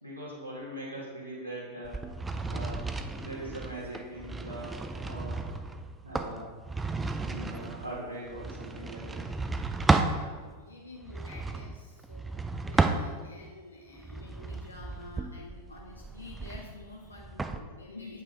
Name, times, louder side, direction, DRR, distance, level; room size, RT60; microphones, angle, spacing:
voice 1, 0.0-2.1 2.5-5.5 6.0-6.5 7.2-9.3, right 1 dB, 90° right, -9 dB, 2.0 m, -41 dB
sound 1, 1.8-10.2 11.0-13.5 14.0-17.6, right 3 dB, 10° right, 0.5 m, -33 dB
voice 2, 9.7-12.4 12.7-18.2, left 2 dB, 80° left, -1 dB, 0.8 m, -48 dB
8.3 x 5.8 x 4.1 m, 1.5 s
figure-of-eight pair, 90°, 0 cm